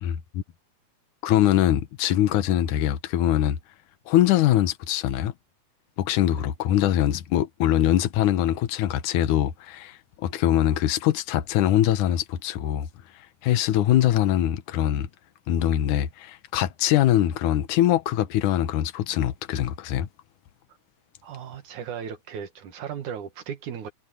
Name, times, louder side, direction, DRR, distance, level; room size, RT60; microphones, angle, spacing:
voice 1, 0.0-0.4 1.2-3.6 4.1-5.3 6.0-12.9 13.4-15.1 15.5-20.1, left 12 dB, 75° left, 2.5 m, -23 dB
voice 2, 21.2-23.9, right 8 dB, 70° right, 2.9 m, -36 dB
omnidirectional pair, 3.7 m